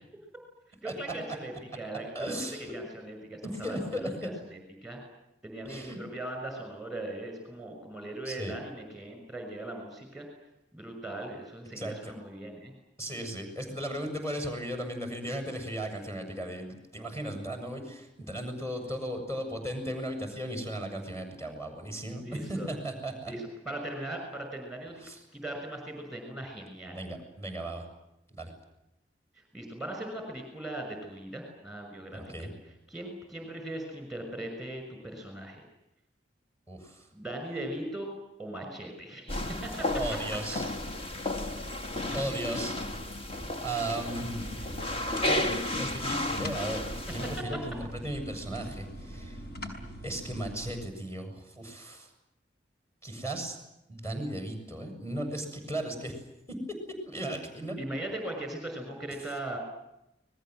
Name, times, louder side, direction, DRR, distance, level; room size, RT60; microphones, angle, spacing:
voice 1, 0.8-5.0 5.4-10.2 10.7-12.7 22.2-22.8 23.3-25.0 25.3-27.0 29.3-32.5 32.9-35.6 37.1-38.1 38.4-39.9 42.1-42.3 46.7-46.8 57.8-59.6, right 1 dB, ahead, 4 dB, 6.2 m, -39 dB
voice 2, 2.1-2.8 3.4-4.3 5.6-6.0 8.3-8.6 11.8-12.1 13.0-23.3 25.0-25.2 26.9-27.9 28.3-28.5 32.1-32.5 36.7-37.1 39.9-40.7 42.1-42.8 43.6-44.5 45.3-49.4 50.0-52.1 53.0-53.6 53.9-56.2 57.1-57.8, right 1 dB, 15° left, 5 dB, 7.2 m, -36 dB
sound 1, 39.3-47.4, left 1 dB, 30° left, 1.9 m, -33 dB
sound 2, 44.1-50.8, equal, 60° left, 5.6 m, -43 dB
29.5 x 21.0 x 7.9 m, 0.86 s
head